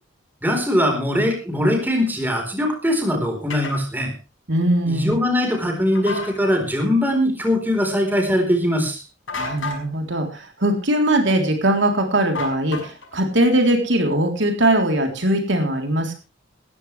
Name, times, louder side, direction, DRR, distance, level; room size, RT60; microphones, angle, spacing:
voice 1, 0.4-4.1 4.9-9.0, left 1 dB, 10° right, 3 dB, 4.2 m, -21 dB
sound 1, 3.5-3.8 5.9-6.3 9.3-9.8 12.3-13.1, left 3 dB, 75° left, 5.4 m, -30 dB
voice 2, 4.5-5.2 9.3-16.2, right 1 dB, 65° right, 3 dB, 3.5 m, -20 dB
18.5 x 14.5 x 3.3 m, 0.32 s
head